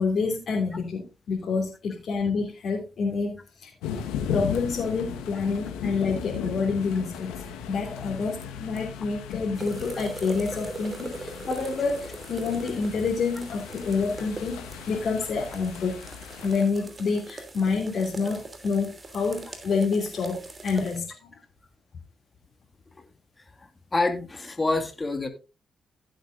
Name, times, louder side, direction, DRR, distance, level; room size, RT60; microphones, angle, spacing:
voice 1, 0.0-3.7 4.3-16.0 16.4-21.0, left 4 dB, 65° left, -3 dB, 3.0 m, -28 dB
sound 1, 3.8-16.7, left 7 dB, 85° left, 1.3 m, -36 dB
sound 2, 9.5-21.0, right 2 dB, 40° right, 2.9 m, -41 dB
voice 2, 23.6-25.3, left 2 dB, 30° left, 6 dB, 2.0 m, -27 dB
16.0 x 7.9 x 2.6 m, 0.30 s
hypercardioid pair, 45°, 0 cm